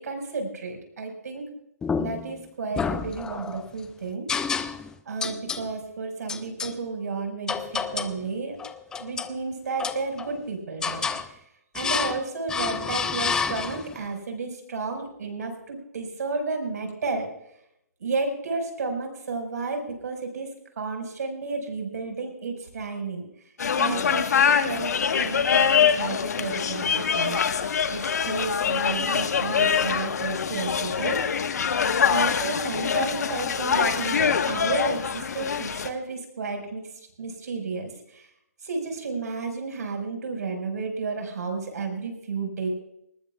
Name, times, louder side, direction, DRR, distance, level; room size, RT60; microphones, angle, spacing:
voice 1, 0.0-1.5 2.0-4.3 5.1-8.6 8.9-11.4 11.7-17.3 18.0-20.5 20.8-23.3 23.8-27.4 27.9-31.5 32.1-36.8 37.2-38.3 38.6-42.7, right 4 dB, 75° right, 4 dB, 5.2 m, -32 dB
sound 1, 1.8-2.3 2.8-3.6 4.3-4.9 5.2-5.7 6.3-6.8 7.5-8.2 8.6-9.4 9.8-10.4 10.8-11.3 11.8-12.2 12.5-14.0, left 6 dB, 10° left, 0.4 m, -29 dB
sound 2, 23.6-35.9, left 7 dB, 75° left, 1.3 m, -24 dB
19.5 x 19.5 x 2.4 m, 0.80 s
hypercardioid pair, 155°, 9 cm